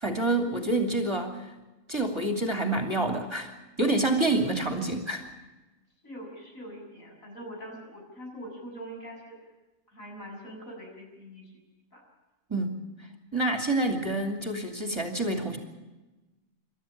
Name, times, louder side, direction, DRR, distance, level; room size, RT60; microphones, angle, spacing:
voice 1, 0.0-1.5 1.9-5.3 12.5-12.8 13.3-15.6, right 2 dB, 20° right, 4 dB, 2.8 m, -27 dB
voice 2, 6.0-9.4 9.9-11.6 11.9-12.0, equal, 85° left, -1 dB, 8.0 m, -43 dB
28.0 x 13.0 x 8.6 m, 1.1 s
omnidirectional pair, 1.4 m